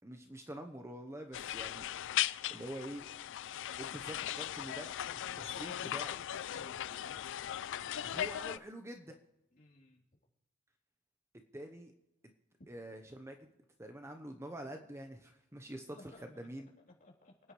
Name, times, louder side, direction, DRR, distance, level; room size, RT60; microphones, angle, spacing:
voice 1, 0.0-1.8 2.5-3.1 3.8-6.2 8.0-9.2 11.5-11.9 12.7-13.5 13.8-16.7, right 1 dB, 15° right, 5 dB, 0.9 m, -46 dB
sound 1, 1.3-8.6, left 11 dB, 60° left, 0.4 m, -38 dB
voice 2, 6.5-7.7 9.5-10.0 15.9-16.2 17.0-17.3, left 2 dB, 40° left, -2 dB, 3.6 m, -57 dB
28.5 x 9.8 x 3.2 m, 0.90 s
head